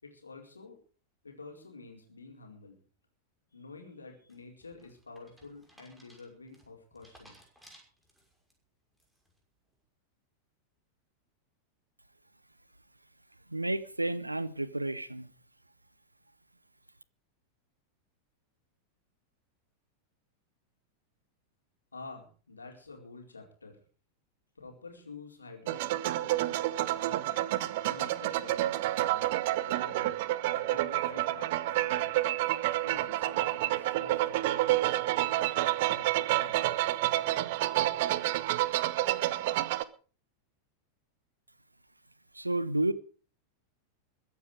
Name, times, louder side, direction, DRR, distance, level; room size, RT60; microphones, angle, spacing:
voice 1, 0.0-0.8 1.2-2.8 3.5-7.4 21.9-23.8 24.5-27.3 27.8-29.2 29.6-32.1 32.8-37.0, left 3 dB, 75° left, 4.4 m, -49 dB
sound 1, 4.3-8.5 9.0-9.4, equal, 5° right, 5.9 m, -59 dB
voice 2, 13.5-15.3 42.3-42.9, right 2 dB, 85° right, 1.0 m, -31 dB
sound 2, 25.7-39.8, right 16 dB, 50° right, 0.9 m, -29 dB
22.0 x 9.4 x 5.0 m
figure-of-eight pair, 90°, 0 cm